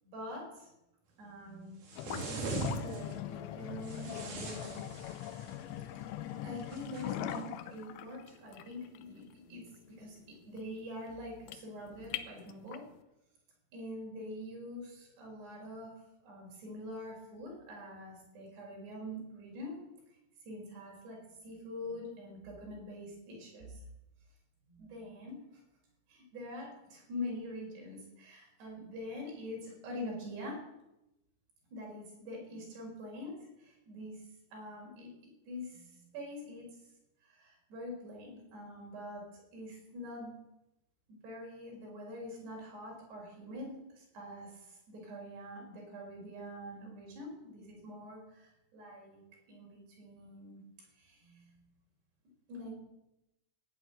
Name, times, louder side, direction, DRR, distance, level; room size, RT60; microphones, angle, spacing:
voice 1, 0.0-0.7 1.2-4.8 6.4-10.2 10.5-12.8 13.7-15.9 16.2-19.8 20.1-23.8 24.7-25.6 26.1-30.6 31.7-34.2 34.5-35.1 35.5-36.7 37.2-40.3 41.1-49.2 49.5-50.6 51.0-51.5 52.5-52.7, left 1 dB, 70° right, -1 dB, 7.3 m, -45 dB
sound 1, 1.8-3.1 3.8-5.6 6.7-7.4, right 4 dB, 50° right, 4.1 m, -41 dB
sound 2, 1.9-13.0, left 12 dB, 85° left, 3.2 m, -42 dB
17.0 x 8.9 x 9.3 m, 0.91 s
omnidirectional pair, 5.0 m